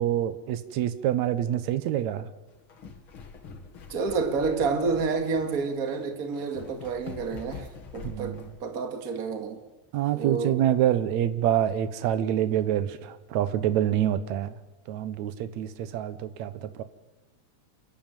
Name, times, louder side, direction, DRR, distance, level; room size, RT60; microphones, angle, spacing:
voice 1, 0.0-2.3 8.0-8.5 9.9-14.6 14.9-16.8, right 11 dB, 75° right, 12 dB, 2.3 m, -26 dB
sound 1, 2.5-8.6, left 4 dB, 45° left, 2.5 m, -45 dB
voice 2, 3.9-9.6 10.1-10.6, right 4 dB, 35° right, 5 dB, 2.1 m, -29 dB
28.0 x 12.5 x 9.1 m, 1.1 s
omnidirectional pair, 3.4 m